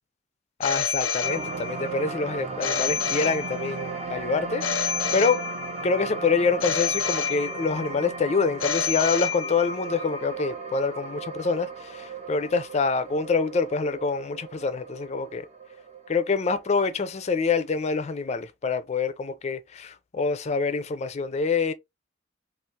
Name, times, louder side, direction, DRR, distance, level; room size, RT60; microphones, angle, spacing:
Telephone, 0.6-1.9 2.6-3.9 4.6-5.9 6.6-7.9 8.6-9.9, left 7 dB, 85° left, 0.5 m, -28 dB
voice 1, 0.6-5.4 5.8-15.5 16.1-21.7, left 4 dB, 35° left, 0.4 m, -26 dB
sound 1, 1.2-17.7 18.1-18.2, right 4 dB, 30° right, 0.5 m, -36 dB
3.3 x 2.4 x 2.7 m
head